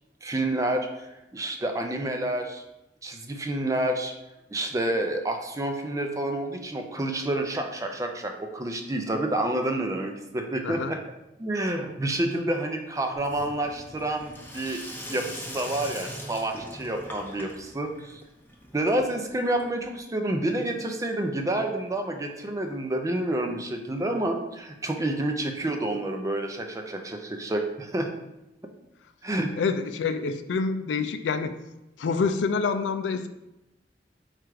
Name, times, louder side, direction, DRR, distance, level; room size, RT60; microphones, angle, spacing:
voice 1, 0.2-2.6 3.0-4.1 4.5-11.0 11.4-14.8 15.1-18.2 18.7-28.1 29.2-29.5, right 1 dB, 20° right, 3 dB, 0.4 m, -29 dB
Sink (filling or washing), 13.1-19.9, left 1 dB, 10° left, 0.7 m, -41 dB
voice 2, 29.6-31.5 32.0-33.3, left 5 dB, 80° left, 9 dB, 0.4 m, -27 dB
4.4 x 2.5 x 4.7 m, 0.94 s
head